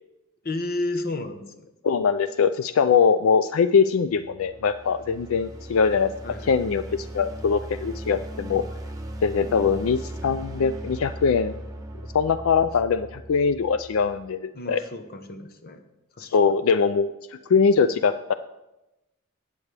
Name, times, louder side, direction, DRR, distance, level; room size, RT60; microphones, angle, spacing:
voice 1, 0.4-1.6 6.2-7.0 14.5-15.8 16.2-16.3, left 2 dB, 45° left, 7 dB, 1.0 m, -32 dB
voice 2, 1.8-8.6 9.2-11.5 12.1-14.8 16.2-17.1 17.5-18.3, left 5 dB, 75° left, 12 dB, 0.4 m, -22 dB
sound 1, 3.9-14.2, right 1 dB, 15° right, 1.0 m, -38 dB
19.0 x 8.4 x 3.4 m, 0.97 s
head